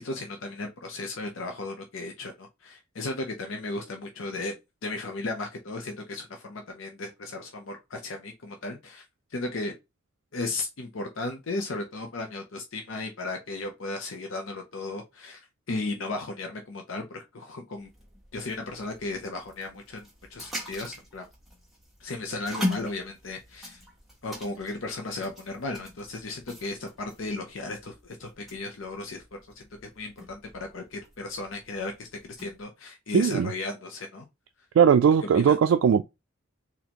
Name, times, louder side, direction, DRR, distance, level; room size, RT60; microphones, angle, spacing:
voice 1, 0.0-4.5 4.8-9.0 9.3-9.7 10.3-17.9 18.3-21.3 22.0-23.8 24.2-29.2 29.6-29.7 30.0-34.2 35.3-35.6, left 2 dB, 75° left, 0.6 m, -35 dB
sound 1, 17.8-32.6, left 1 dB, ahead, 1.1 m, -41 dB
voice 2, 33.1-33.5 34.8-36.0, right 7 dB, 85° right, 0.3 m, -19 dB
4.2 x 2.8 x 2.9 m
head